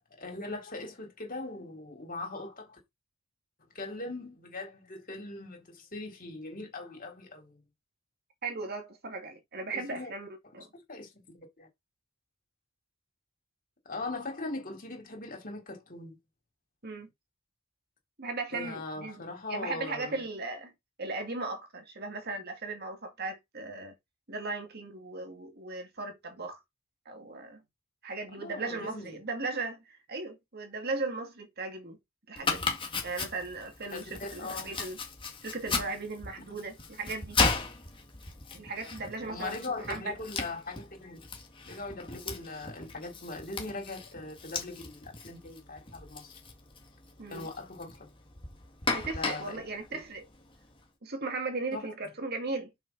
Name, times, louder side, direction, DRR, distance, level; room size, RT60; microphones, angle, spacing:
voice 1, 0.2-2.8 3.7-7.6 9.7-10.1 10.5-11.7 13.9-16.2 18.5-20.1 28.3-29.1 33.9-34.7 39.3-41.2 41.7-46.3 47.3-48.1 49.1-49.6 49.9-50.0 51.7-51.9, left 2 dB, 40° left, 3.8 m, -40 dB
voice 2, 8.4-10.3 10.5-10.7 16.8-17.1 18.2-20.7 21.0-23.9 24.3-26.6 27.1-27.6 28.0-32.0 32.3-32.8 33.0-35.0 35.4-37.4 38.5-40.1 47.2-47.5 48.9-50.3 51.0-52.7, right 3 dB, 50° right, 2.2 m, -37 dB
Domestic sounds home sounds, 32.4-50.8, left 4 dB, 25° left, 2.0 m, -36 dB
7.2 x 5.9 x 4.1 m
head